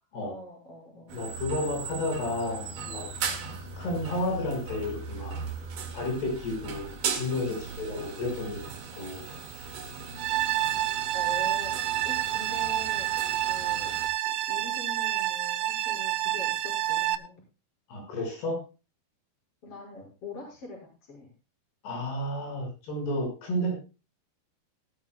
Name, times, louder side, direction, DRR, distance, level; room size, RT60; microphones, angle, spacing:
voice 1, 0.2-1.2 3.3-3.5 7.4-8.0 10.3-10.4 11.1-13.1 13.5-13.9 14.2-17.4 19.6-21.3, left 2 dB, 35° left, -1 dB, 6.5 m, -44 dB
voice 2, 1.1-3.1 3.8-5.4 5.9-7.5 7.8-8.6 8.9-9.3 17.9-18.6 21.8-23.8, left 1 dB, 75° left, 1 dB, 7.5 m, -31 dB
sound 1, 1.1-14.1, right 5 dB, 60° right, 3.2 m, -38 dB
sound 2, 10.2-17.2, right 14 dB, 85° right, 3.0 m, -28 dB
18.5 x 13.5 x 2.3 m, 0.31 s
omnidirectional pair, 4.7 m